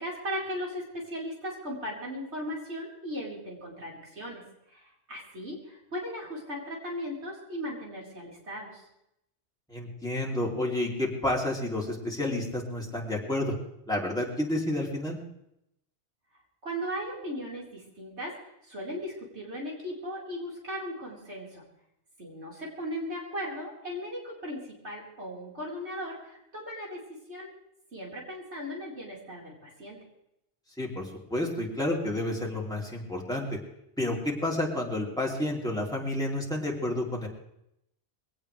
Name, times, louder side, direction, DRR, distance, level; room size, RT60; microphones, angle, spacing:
voice 1, 0.0-4.4 4.7-8.8 16.6-21.6 22.2-27.5 27.9-30.0, equal, 85° right, -3 dB, 4.7 m, -37 dB
voice 2, 9.7-13.5 13.9-15.2 30.8-33.6 34.0-37.3, left 1 dB, 5° left, -3 dB, 3.1 m, -30 dB
21.5 x 17.5 x 3.3 m, 0.80 s
omnidirectional pair, 1.1 m